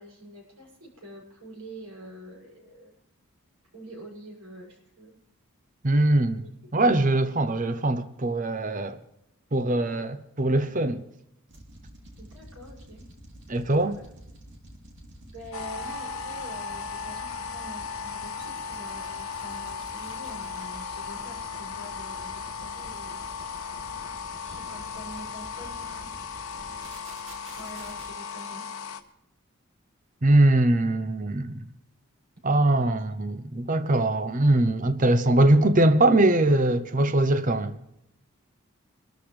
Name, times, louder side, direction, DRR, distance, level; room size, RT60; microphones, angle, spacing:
voice 1, 0.0-2.9 3.7-5.1 6.3-6.5 9.7-10.1 12.2-13.0 13.6-14.0 15.2-23.3 24.4-26.1 27.6-28.7 32.8-33.0, equal, 90° right, 7.0 m, -46 dB
voice 2, 5.8-6.4 6.7-9.0 9.5-11.0 13.5-14.0 30.2-31.6 32.4-37.8, right 1 dB, 35° right, 0.7 m, -22 dB
sound 1, 11.5-28.1, right 1 dB, 55° right, 2.8 m, -48 dB
sound 2, 15.5-29.0, left 5 dB, 75° left, 1.1 m, -36 dB
24.0 x 13.0 x 3.3 m
head